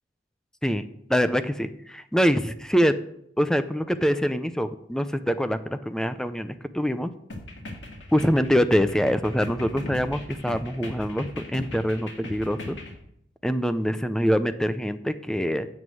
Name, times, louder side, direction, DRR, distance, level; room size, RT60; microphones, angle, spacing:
voice 1, 1.1-2.9 3.4-7.1 8.1-12.8 13.4-15.7, equal, 5° left, 11 dB, 0.6 m, -24 dB
sound 1, 7.3-12.9, left 1 dB, 75° left, 2.1 m, -39 dB
9.5 x 7.3 x 7.8 m, 0.76 s
head